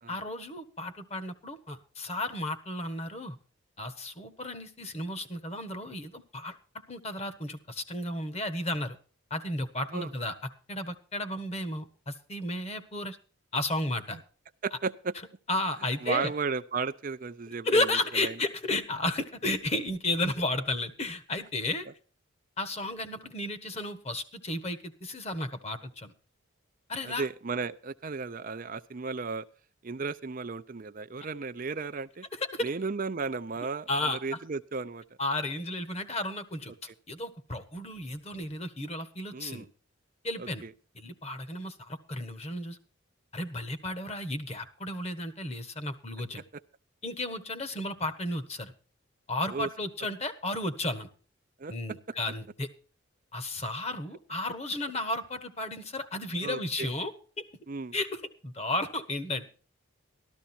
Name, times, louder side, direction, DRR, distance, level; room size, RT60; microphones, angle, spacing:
voice 1, 0.1-3.4 3.8-6.5 6.9-9.0 9.3-13.2 13.5-14.2 15.5-16.3 17.6-21.9 22.6-26.1 26.9-27.3 32.3-32.7 33.9-34.2 35.2-39.7 40.2-40.6 40.9-42.8 43.3-46.4 47.0-48.7 49.3-51.1 51.7-52.7 53.3-57.5 57.9-59.5, left 1 dB, 30° left, 9 dB, 1.4 m, -33 dB
voice 2, 14.6-15.1 16.0-17.9 18.1-18.4 27.0-29.4 29.8-32.2 32.6-35.0 39.3-39.7 40.4-40.7 49.5-49.7 51.6-51.7 56.4-56.9 57.7-57.9, right 4 dB, 40° right, 11 dB, 0.5 m, -34 dB
13.5 x 13.0 x 4.3 m, 0.38 s
head